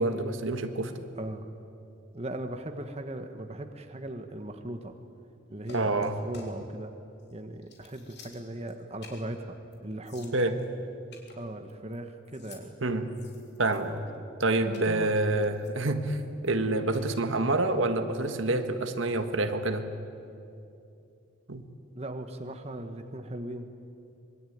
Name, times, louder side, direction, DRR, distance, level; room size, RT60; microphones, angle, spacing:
voice 1, 0.0-1.1 5.7-6.1 10.3-10.6 12.8-13.1 13.6-13.9 14.4-19.9 21.5-21.6, right 2 dB, 65° right, 7 dB, 1.6 m, -27 dB
voice 2, 1.2-1.5 2.1-4.9 5.5-6.9 7.3-9.6 9.8-10.4 11.4-12.7 13.9-14.0 14.7-15.2 16.5-16.8 21.9-23.7, right 1 dB, 30° right, 6 dB, 1.4 m, -38 dB
sound 1, 5.6-6.7 7.2-7.3 7.6-8.7 9.0-9.3 9.7-9.8 10.0-10.7 11.1-12.0 12.2-12.6 13.1-14.0 14.7-14.9 15.4-16.5 16.9-17.2, left 3 dB, 55° left, 3.4 m, -51 dB
25.5 x 22.5 x 9.4 m, 2.7 s
head